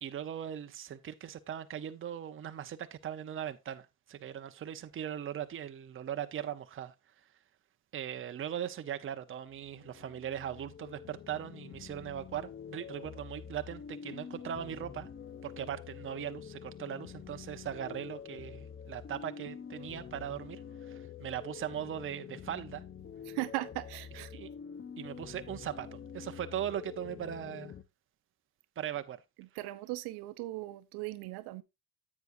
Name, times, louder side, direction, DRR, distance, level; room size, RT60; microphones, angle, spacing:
voice 1, 0.0-6.9 7.9-15.1 15.4-22.8 24.3-24.5 25.0-27.7 28.8-29.2, right 10 dB, 30° right, 0.9 m, -39 dB
sound 1, 9.4-27.8, left 7 dB, 25° left, 0.8 m, -47 dB
voice 2, 23.3-24.4 29.4-31.6, right 19 dB, 75° right, 0.9 m, -38 dB
9.9 x 8.4 x 2.6 m
supercardioid pair, 105°, 40 cm